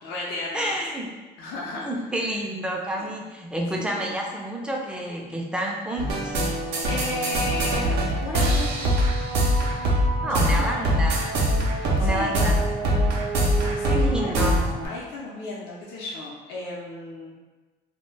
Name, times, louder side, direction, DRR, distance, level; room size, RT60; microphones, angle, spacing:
voice 1, 0.0-0.7 1.4-1.9 3.0-3.1 3.8-4.0 6.9-8.8 10.4-10.9 11.6-12.4 13.6-17.3, left 2 dB, 80° left, -4 dB, 0.6 m, -34 dB
voice 2, 0.5-1.1 1.8-6.4 10.2-11.3 12.0-12.6 13.9-14.6, right 1 dB, 5° right, -1 dB, 0.4 m, -29 dB
sound 1, 6.0-14.9, right 1 dB, 75° right, 0.5 m, -23 dB
2.2 x 2.1 x 3.2 m, 1.2 s
cardioid pair, 110°, 17 cm